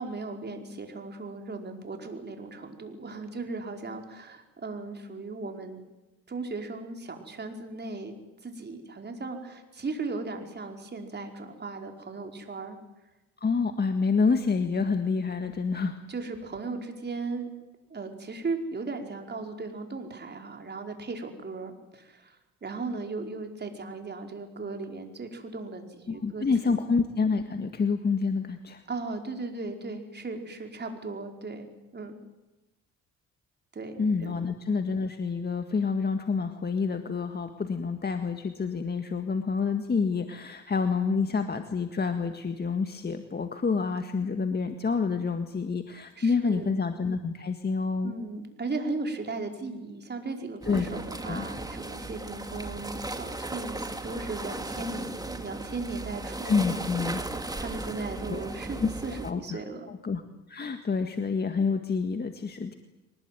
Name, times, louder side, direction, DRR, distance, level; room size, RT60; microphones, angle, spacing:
voice 1, 0.0-5.8 6.3-8.2 8.4-12.8 16.1-17.5 17.9-22.4 22.6-26.8 28.9-31.7 31.9-32.1 33.7-34.4 46.2-46.7 48.0-56.7 57.5-59.9, right 3 dB, 35° right, 4 dB, 4.9 m, -37 dB
voice 2, 13.4-16.0 26.1-28.8 34.0-48.1 50.7-50.9 51.2-51.4 56.4-57.2 58.3-58.4 58.8-58.9 59.2-59.6 59.9-60.2 60.5-62.7, left 5 dB, 35° left, 7 dB, 1.8 m, -28 dB
sound 1, 50.6-59.3, right 2 dB, 10° right, 2.5 m, -36 dB
24.0 x 20.0 x 9.4 m, 1.0 s
cardioid pair, 90°, 30 cm